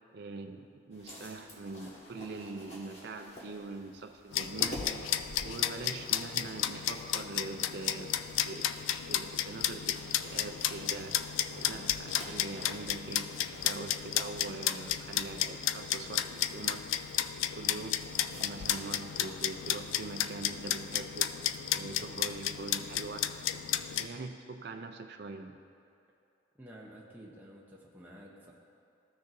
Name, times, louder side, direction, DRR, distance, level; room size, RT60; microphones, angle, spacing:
voice 1, 0.1-4.9 5.4-8.1 8.4-8.7 9.1-10.0 10.2-11.2 11.5-16.8 17.6-21.3 21.7-23.3 24.0-25.6, right 3 dB, 55° right, 5 dB, 0.4 m, -43 dB
sound 1, 0.9-20.7, equal, 35° left, 1.6 m, -51 dB
sound 2, 4.3-24.1, left 11 dB, 85° left, 0.3 m, -33 dB
voice 2, 26.6-28.5, equal, 10° right, -4 dB, 0.7 m, -51 dB
14.5 x 6.5 x 2.6 m, 2.6 s
head